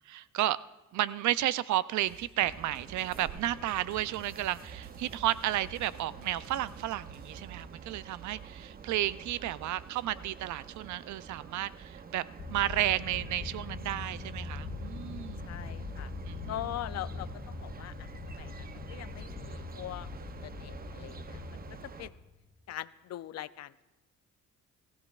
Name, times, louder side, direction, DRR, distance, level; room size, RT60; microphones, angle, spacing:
voice 1, 0.1-0.6 0.9-12.2 12.5-15.4 16.3-16.6, right 13 dB, 70° right, 17 dB, 0.5 m, -32 dB
sound 1, 2.1-7.6, right 4 dB, 50° right, 1.5 m, -51 dB
sound 2, 2.4-22.1, right 6 dB, 30° right, 0.6 m, -48 dB
sound 3, 12.4-22.5, left 4 dB, 40° left, 1.7 m, -42 dB
voice 2, 15.5-16.1 16.5-18.1 18.4-20.1 20.4-21.4 22.0-22.1 22.7-23.8, left 13 dB, 60° left, 16 dB, 0.5 m, -42 dB
19.0 x 15.5 x 2.4 m, 1.1 s
cardioid pair, 90°, 30 cm